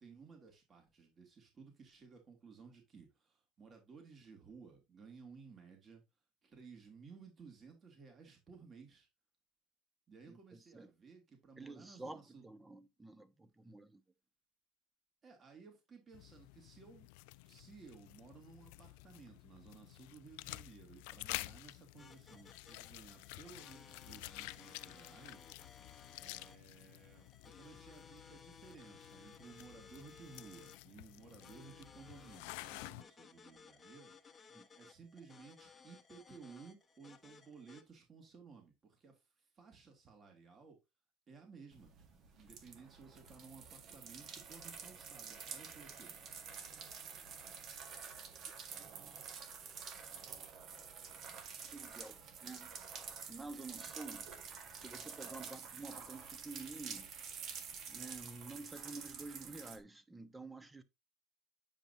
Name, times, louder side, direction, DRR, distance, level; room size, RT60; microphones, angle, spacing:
voice 1, 0.0-6.0 6.4-9.1 10.1-12.5 15.2-17.1 17.4-25.5 26.2-34.2 34.8-40.8 41.3-41.9 42.4-46.2, right 5 dB, 35° right, 2.6 m, -57 dB
voice 2, 10.3-10.9 11.6-14.0 34.5-34.7 46.7-46.8 51.6-52.7 53.3-54.3 54.7-57.1 57.9-60.8, right 3 dB, 15° right, 1.0 m, -50 dB
sound 1, 16.1-33.0, left 21 dB, 80° left, 0.3 m, -51 dB
sound 2, 22.0-37.8, left 5 dB, 20° left, 1.2 m, -60 dB
sound 3, 41.7-59.8, right 6 dB, 55° right, 1.5 m, -49 dB
9.1 x 5.3 x 2.8 m
supercardioid pair, 90°, 0 cm